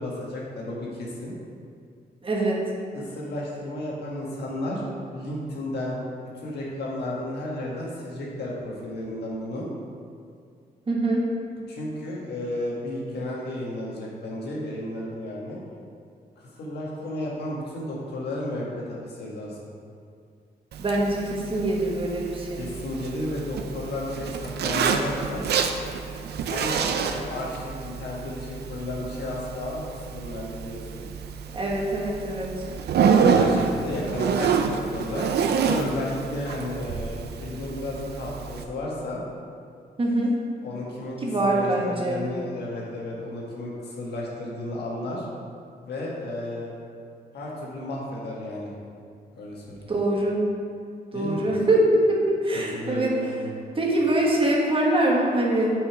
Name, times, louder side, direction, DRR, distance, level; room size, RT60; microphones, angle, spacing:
voice 1, 0.0-1.3 2.9-4.8 5.1-6.0 6.3-9.7 11.7-15.6 16.4-19.7 22.6-25.5 26.5-31.1 33.3-35.3 35.6-39.2 40.6-45.2 45.8-46.7 47.3-48.7 49.3-49.9 51.1-51.5 52.5-53.5, left 1 dB, 90° left, -4 dB, 1.6 m, -33 dB
voice 2, 2.2-2.6 10.9-11.2 20.8-22.6 31.5-32.5 40.0-40.3 41.2-42.2 49.9-50.4 51.1-53.1 53.8-55.7, right 1 dB, 35° right, -2 dB, 1.3 m, -23 dB
Zipper (clothing), 20.7-38.6, right 6 dB, 85° right, 0.5 m, -28 dB
6.1 x 5.6 x 4.9 m, 2.3 s
cardioid pair, 105°, 17 cm